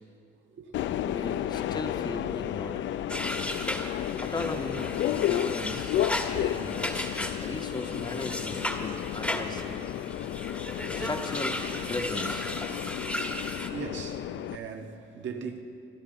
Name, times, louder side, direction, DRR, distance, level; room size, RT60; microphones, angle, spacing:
Subway metro underground, 0.7-14.6, left 11 dB, 70° left, 0.5 m, -32 dB
voice 1, 1.1-2.8 4.2-6.0 6.4-7.1 7.4-9.6 10.9-12.5, left 2 dB, 20° left, 5 dB, 1.3 m, -37 dB
sound 1, 3.1-13.7, left 1 dB, 5° left, 1.4 m, -35 dB
voice 2, 6.3-6.7 13.0-13.1 13.7-15.6, right 6 dB, 70° right, 3 dB, 1.6 m, -39 dB
27.0 x 11.5 x 3.9 m, 2.5 s
cardioid pair, 90°, 20 cm